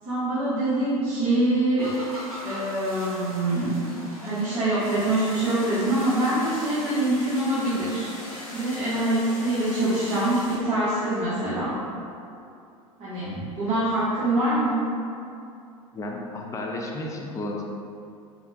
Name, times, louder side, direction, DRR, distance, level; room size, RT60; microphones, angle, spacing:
voice 1, 0.0-1.9 2.4-3.8 4.2-8.1 8.5-11.8 13.0-14.9, right 1 dB, 35° right, -13 dB, 1.1 m, -24 dB
sound 1, 1.8-10.4, equal, 90° right, 0.6 m, -41 dB
sound 2, 4.8-10.6, left 1 dB, 60° left, 0.9 m, -43 dB
voice 2, 15.9-17.6, left 2 dB, 15° left, 0 dB, 0.4 m, -32 dB
3.6 x 2.2 x 2.6 m, 2.5 s
figure-of-eight pair, 80°, 18 cm